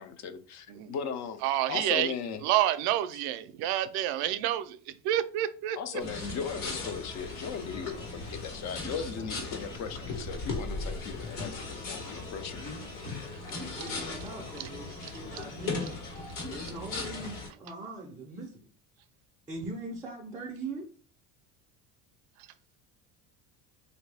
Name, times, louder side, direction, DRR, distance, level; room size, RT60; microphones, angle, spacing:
voice 1, 0.0-1.4 1.7-2.4 5.8-12.6, left 6 dB, 40° left, 0.5 m, -37 dB
voice 2, 1.4-2.1 2.4-5.8 13.3-13.4 13.8-13.9 14.6-14.7 15.0-15.4 22.4-22.5, right 13 dB, 65° right, 0.5 m, -29 dB
sound 1, 6.0-17.5, left 3 dB, 65° left, 1.5 m, -38 dB
voice 3, 13.5-16.0 16.5-18.7 19.5-20.9, right 2 dB, 10° right, 0.5 m, -41 dB
3.2 x 2.6 x 3.3 m
cardioid pair, 140°, 42 cm